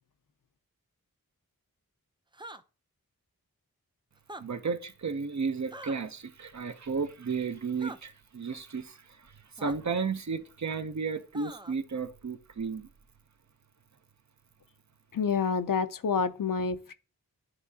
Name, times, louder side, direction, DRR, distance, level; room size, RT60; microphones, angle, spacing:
sound 1, 2.3-2.6 4.2-4.4 5.7-6.0 7.8-8.0 9.6-9.7 11.3-11.8, right 2 dB, 15° right, 0.4 m, -43 dB
voice 1, 4.4-12.9, right 5 dB, 50° right, 0.7 m, -33 dB
voice 2, 15.1-16.9, left 5 dB, 60° left, 0.6 m, -28 dB
10.5 x 3.6 x 2.7 m
cardioid pair, 40°, 37 cm